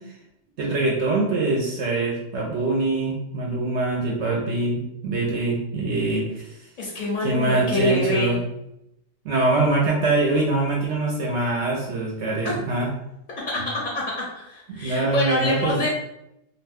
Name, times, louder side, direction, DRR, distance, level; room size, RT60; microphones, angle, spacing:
voice 1, 0.6-6.5 7.2-8.4 9.2-12.9 14.7-15.9, right 2 dB, 65° right, -2 dB, 0.8 m, -23 dB
voice 2, 6.8-8.4 12.4-12.5 13.5-13.6 13.9-15.9, left 1 dB, 45° left, -4 dB, 0.7 m, -25 dB
2.5 x 2.2 x 3.3 m, 0.83 s
omnidirectional pair, 1.4 m